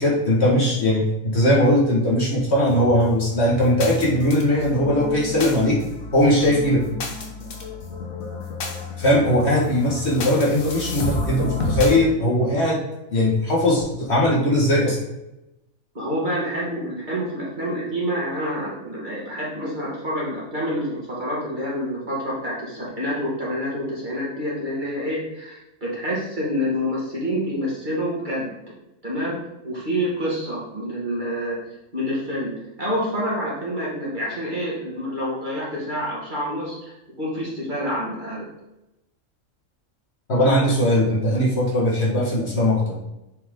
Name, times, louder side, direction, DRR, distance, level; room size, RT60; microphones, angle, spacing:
voice 1, 0.0-5.8 6.1-6.8 9.0-12.8 13.1-15.0 40.3-43.0, left 1 dB, 50° left, -5 dB, 2.0 m, -19 dB
sound 1, 2.7-12.0, left 3 dB, 80° left, 1.5 m, -31 dB
voice 2, 15.9-28.5 29.0-29.4 29.6-31.6 31.9-38.5, equal, 35° right, -6 dB, 2.2 m, -27 dB
6.8 x 4.5 x 3.7 m, 0.91 s
omnidirectional pair, 1.4 m